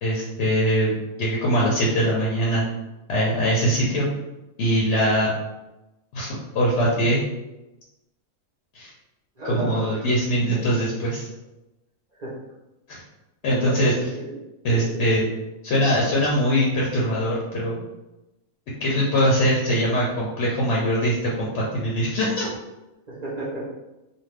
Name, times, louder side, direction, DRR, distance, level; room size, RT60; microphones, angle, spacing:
voice 1, 0.0-2.6 3.1-4.1 4.6-5.3 6.1-7.2 8.7-8.9 9.4-11.3 12.9-13.0 13.4-13.9 14.6-15.3 15.6-17.9 18.8-22.5, equal, 60° left, -5 dB, 0.8 m, -22 dB
voice 2, 9.4-10.1 12.2-12.3 13.5-14.4 14.7-15.0 23.1-23.7, right 1 dB, 40° right, -8 dB, 0.7 m, -33 dB
2.5 x 2.3 x 3.3 m, 0.98 s
omnidirectional pair, 1.5 m